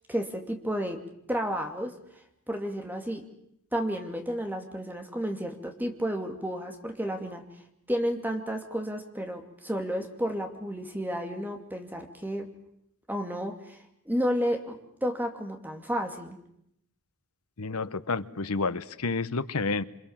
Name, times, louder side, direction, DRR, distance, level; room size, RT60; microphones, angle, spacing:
voice 1, 0.1-1.0 1.3-1.9 2.5-3.2 3.7-7.4 7.9-12.5 13.1-13.8 14.1-16.4, equal, 10° right, 4 dB, 2.6 m, -31 dB
voice 2, 17.6-19.8, left 3 dB, 75° left, 13 dB, 1.0 m, -30 dB
28.0 x 25.5 x 7.4 m, 0.77 s
head